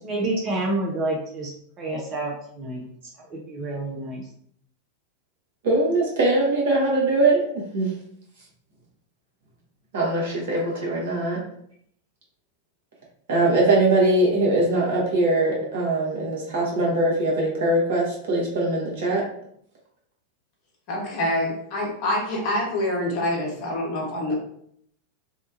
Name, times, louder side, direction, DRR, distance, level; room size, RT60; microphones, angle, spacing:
voice 1, 0.0-1.5 1.8-2.9 3.2-4.3, right 2 dB, 30° right, -1 dB, 0.5 m, -28 dB
voice 2, 5.6-7.9 9.9-11.4 13.3-19.2, right 2 dB, 60° right, -3 dB, 1.0 m, -22 dB
voice 3, 20.9-24.4, left 1 dB, 45° left, -2 dB, 0.9 m, -26 dB
2.8 x 2.2 x 2.6 m, 0.67 s
figure-of-eight pair, 90°, 0 cm